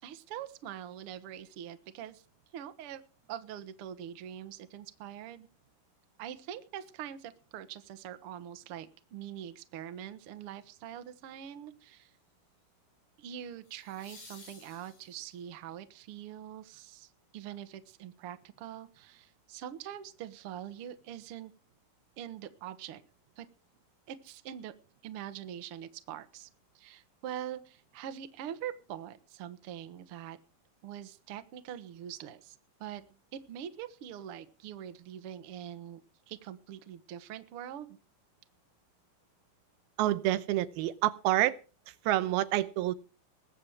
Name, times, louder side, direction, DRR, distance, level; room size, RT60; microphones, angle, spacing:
voice 1, 0.0-2.2 2.5-3.0 3.3-5.5 6.2-12.1 13.2-21.5 22.2-23.0 23.4-23.5 24.1-24.7 25.0-26.5 26.7-30.4 30.8-32.5 32.8-33.0 33.3-37.9, right 10 dB, 60° right, 1.6 m, -43 dB
sound 1, 10.6-11.0 13.6-15.5 18.4-18.5, left 4 dB, 60° left, 6.9 m, -54 dB
voice 2, 40.0-41.6 41.9-43.0, right 15 dB, 85° right, 2.8 m, -28 dB
21.5 x 8.9 x 4.8 m
omnidirectional pair, 4.3 m